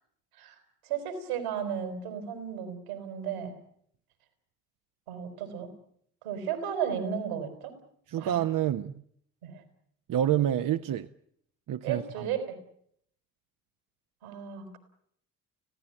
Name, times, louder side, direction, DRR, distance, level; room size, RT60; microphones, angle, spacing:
voice 1, 0.8-3.6 5.1-5.7 6.2-7.7 8.2-8.4 9.4-9.6 11.8-12.5 14.2-14.8, right 8 dB, 80° right, 5.1 m, -34 dB
voice 2, 8.1-8.9 10.1-11.1 11.7-12.3, right 11 dB, 50° right, 1.0 m, -28 dB
25.5 x 17.0 x 9.1 m
hypercardioid pair, 45°, 42 cm